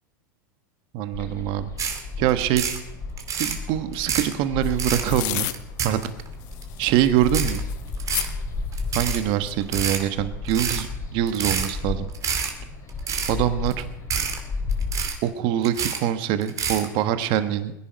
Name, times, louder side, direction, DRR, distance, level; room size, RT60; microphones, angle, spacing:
voice 1, 0.9-1.7 2.2-2.7 3.4-5.5 5.8-6.0 6.8-7.6 8.9-12.1 13.3-13.8 15.2-17.7, right 11 dB, 55° right, 11 dB, 1.4 m, -24 dB
sound 1, 1.1-15.0, left 4 dB, 35° left, 3.2 m, -33 dB
sound 2, 1.8-2.0 2.3-2.8 3.2-3.6 3.9-4.3 4.7-5.1 5.4-6.3 6.6-6.7 7.3-7.6 7.9-8.3 8.7-9.2 9.6-10.0 10.5-10.8 11.3-11.7 12.1-12.5 12.9-13.3 13.7-13.8 14.1-14.4 14.7-15.3 15.6-16.0 16.4-16.9, right 7 dB, 30° right, 2.6 m, -27 dB
sound 3, 4.6-5.6 5.9-6.1 6.4-8.3 9.1-9.5, left 16 dB, 65° left, 1.0 m, -31 dB
21.5 x 10.5 x 5.2 m, 0.87 s
hypercardioid pair, 115°, 10 cm